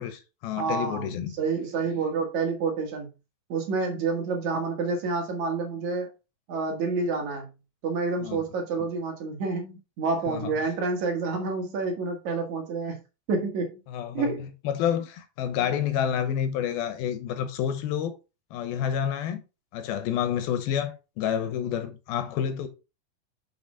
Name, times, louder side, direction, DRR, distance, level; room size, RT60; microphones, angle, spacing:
voice 1, 0.0-1.3 8.2-8.4 10.3-10.5 13.9-18.2 18.5-19.4 19.7-22.7, left 9 dB, 85° left, 2.8 m, -29 dB
voice 2, 0.6-3.1 3.5-6.1 6.5-7.5 7.8-13.0 13.3-13.8 14.1-14.5 15.6-15.7, right 4 dB, 60° right, 2.4 m, -28 dB
6.2 x 5.9 x 3.6 m
omnidirectional pair, 4.2 m